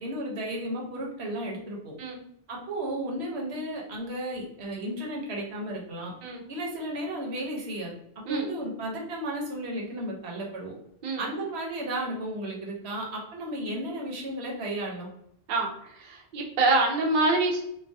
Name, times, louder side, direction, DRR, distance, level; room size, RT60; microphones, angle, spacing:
voice 1, 0.0-1.9 2.5-6.1 6.5-7.9 8.3-10.7 11.2-15.1, right 1 dB, 85° right, -1 dB, 1.0 m, -34 dB
voice 2, 16.1-17.6, right 2 dB, 60° right, 0 dB, 0.6 m, -25 dB
2.3 x 2.2 x 2.6 m, 0.72 s
omnidirectional pair, 1.1 m